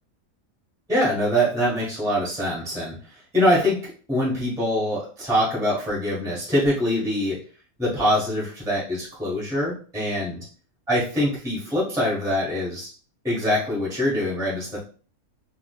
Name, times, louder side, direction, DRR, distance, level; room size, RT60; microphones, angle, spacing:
voice 1, 0.9-7.5 7.8-10.4 10.9-12.9 13.2-14.8, equal, 5° right, -7 dB, 1.0 m, -24 dB
3.5 x 2.8 x 2.2 m, 0.40 s
omnidirectional pair, 1.5 m